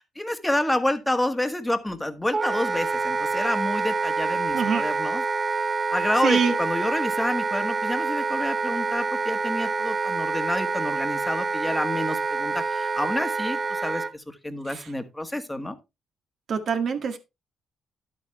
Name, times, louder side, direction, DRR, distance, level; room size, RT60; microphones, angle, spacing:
voice 1, 0.0-5.2 5.9-15.8, left 1 dB, 10° left, 1.6 m, -28 dB
Wind instrument woodwind instrument, 2.3-14.1, right 4 dB, 25° right, 0.8 m, -27 dB
voice 2, 4.5-4.8 6.2-6.5 14.7-14.8 16.5-17.2, right 6 dB, 60° right, 1.8 m, -24 dB
10.5 x 8.7 x 3.3 m
cardioid pair, 90°, 0 cm